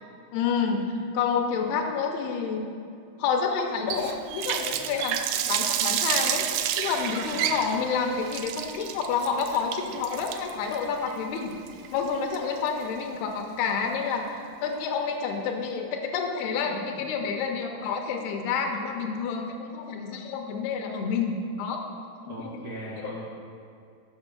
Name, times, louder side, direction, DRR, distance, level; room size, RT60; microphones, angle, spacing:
voice 1, 0.3-0.8 1.1-2.7 3.2-11.6 11.9-21.9 22.3-22.6 23.0-23.1, left 5 dB, 85° left, 3 dB, 2.6 m, -29 dB
Water tap faucet, 3.9-12.8, right 10 dB, 85° right, 2.5 m, -30 dB
voice 2, 22.2-23.3, right 1 dB, 55° right, -7 dB, 1.4 m, -39 dB
8.6 x 6.0 x 6.0 m, 2.4 s
omnidirectional pair, 4.8 m